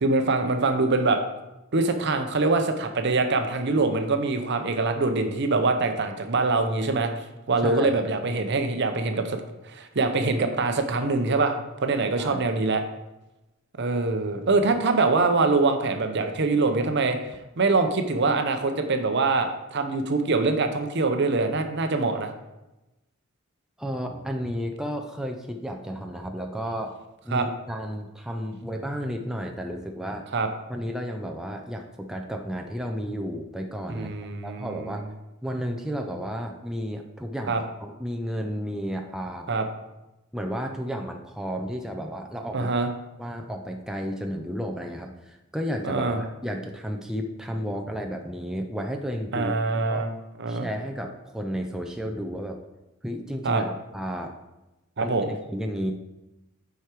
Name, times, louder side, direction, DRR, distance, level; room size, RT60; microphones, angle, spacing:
voice 1, 0.0-1.2 1.7-7.1 7.5-9.4 9.7-12.8 13.8-22.3 27.3-27.5 30.3-30.5 33.9-34.9 37.5-37.6 39.5-39.7 42.5-42.9 45.8-46.2 49.3-50.1 50.4-50.7 53.4-53.6 55.0-55.3, right 3 dB, 55° right, 7 dB, 0.8 m, -24 dB
voice 2, 7.6-8.0 12.2-12.5 23.8-26.9 27.2-30.3 30.7-34.1 34.4-35.1 35.4-39.5 40.3-42.7 43.2-49.5 49.9-50.1 50.5-52.6 53.0-54.3 55.0-55.9, equal, 5° right, 2 dB, 0.5 m, -32 dB
8.1 x 4.8 x 4.5 m, 1.0 s
head